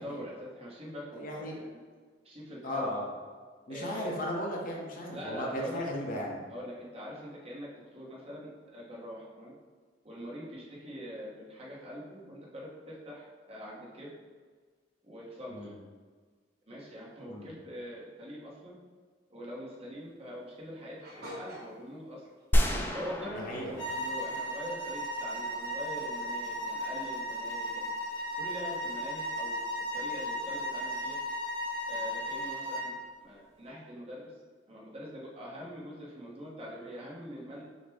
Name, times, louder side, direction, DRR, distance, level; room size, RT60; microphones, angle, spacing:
voice 1, 0.0-1.8 2.2-3.0 3.7-4.1 5.1-5.8 6.5-9.5 10.0-14.1 15.0-15.7 16.7-18.8 19.3-22.3 22.9-27.9 28.4-29.6 29.9-31.2 31.9-33.0 33.2-34.3 34.7-37.6, equal, 35° right, -5 dB, 1.0 m, -43 dB
voice 2, 1.1-1.6 2.6-3.1 3.7-6.4 15.5-15.7 17.3-17.5 23.3-23.7, equal, 45° left, -2 dB, 0.8 m, -36 dB
sound 1, 21.0-21.9 22.2-22.4 22.7-23.3 23.9-24.4 24.8-25.0 25.4-25.5 26.0-26.2, equal, 60° right, 1.0 m, -47 dB
sound 2, 22.5-24.9, equal, 10° left, 0.3 m, -30 dB
sound 3, 23.8-32.9, equal, 80° left, 1.1 m, -35 dB
6.2 x 2.2 x 3.4 m, 1.5 s
head